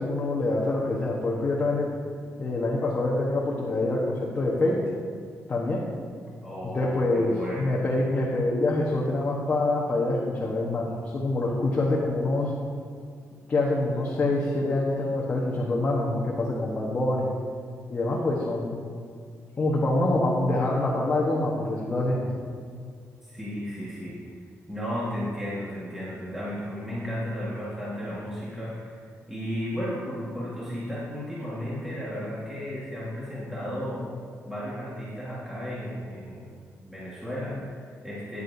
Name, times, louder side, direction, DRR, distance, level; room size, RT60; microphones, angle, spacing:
voice 1, 0.0-1.9 2.4-4.8 5.5-5.8 6.7-12.5 13.5-17.3 17.9-18.8 19.6-22.2, left 2 dB, 30° left, -4 dB, 1.1 m, -25 dB
voice 2, 6.4-7.8 23.2-24.2 24.7-34.0 34.4-36.5 36.8-38.4, equal, 5° right, -9 dB, 1.6 m, -34 dB
13.0 x 9.8 x 2.7 m, 2.2 s
wide cardioid pair, 170°, 6 cm